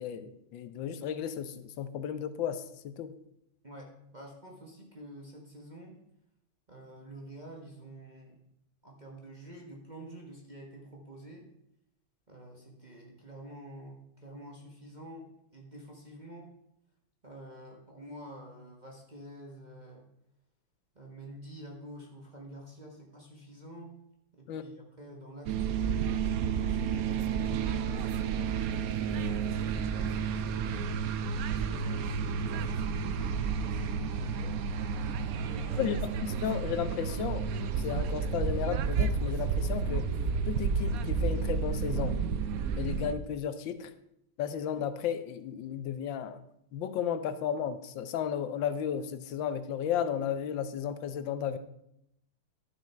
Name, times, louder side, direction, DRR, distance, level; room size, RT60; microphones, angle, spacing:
voice 1, 0.0-3.1 24.5-24.6 35.8-37.5 37.8-40.1 40.5-42.2 42.8-43.9 44.4-46.4 46.7-51.6, left 8 dB, 85° left, 11 dB, 1.5 m, -34 dB
voice 2, 3.6-6.0 6.7-8.4 8.8-11.5 12.3-15.3 15.5-16.5 17.2-20.1 20.9-23.9 24.3-25.9 26.6-30.1 31.3-34.8 35.0-36.0, right 1 dB, 25° right, -1 dB, 1.2 m, -48 dB
sound 1, 25.5-43.1, right 6 dB, 70° right, 0.9 m, -31 dB
11.5 x 6.5 x 4.3 m, 0.79 s
omnidirectional pair, 2.0 m